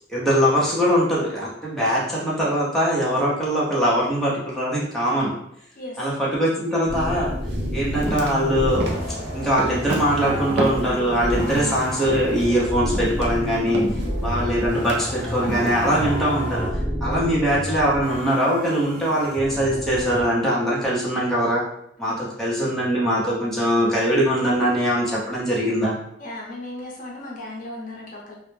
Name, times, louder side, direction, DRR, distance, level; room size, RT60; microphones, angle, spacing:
voice 1, 0.1-5.3 6.0-7.3 7.7-8.8 9.3-13.8 14.2-16.7 17.0-21.6 22.0-26.0, equal, ahead, -7 dB, 0.6 m, -22 dB
voice 2, 5.8-6.1 11.3-11.7 13.9-14.2 17.0-17.3 22.1-22.3 26.2-28.4, left 1 dB, 50° left, -2 dB, 0.5 m, -37 dB
sound 1, 6.9-20.2, equal, 45° right, 0.8 m, -29 dB
sound 2, 6.9-7.1 7.5-11.7 12.1-16.1, right 2 dB, 65° right, 0.4 m, -31 dB
2.1 x 2.0 x 3.1 m, 0.73 s
head